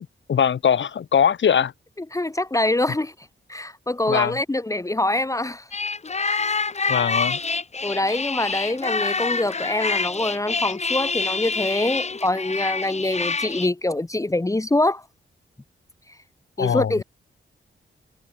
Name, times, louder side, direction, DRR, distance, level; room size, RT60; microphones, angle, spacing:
voice 1, 0.3-1.7 4.1-4.4 6.9-7.4 16.6-16.9, left 8 dB, 65° left, 1.1 m, -21 dB
voice 2, 2.1-3.1 3.5-5.7 7.8-15.0 16.6-17.0, left 2 dB, 15° left, 1.4 m, -24 dB
sound 1, 5.7-13.7, left 4 dB, 35° left, 1.8 m, -26 dB
wide cardioid pair, 125°, 21 cm